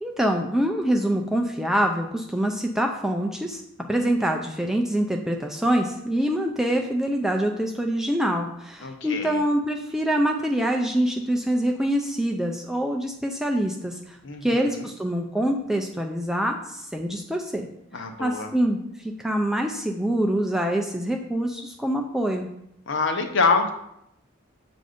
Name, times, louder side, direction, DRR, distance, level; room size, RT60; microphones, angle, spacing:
voice 1, 0.0-3.6 3.9-17.7 17.9-22.5, right 1 dB, ahead, 2 dB, 0.3 m, -25 dB
voice 2, 8.8-9.4 14.2-14.9 17.9-18.5 22.9-23.7, left 4 dB, 55° left, 5 dB, 0.7 m, -25 dB
7.6 x 2.6 x 4.9 m, 0.79 s
head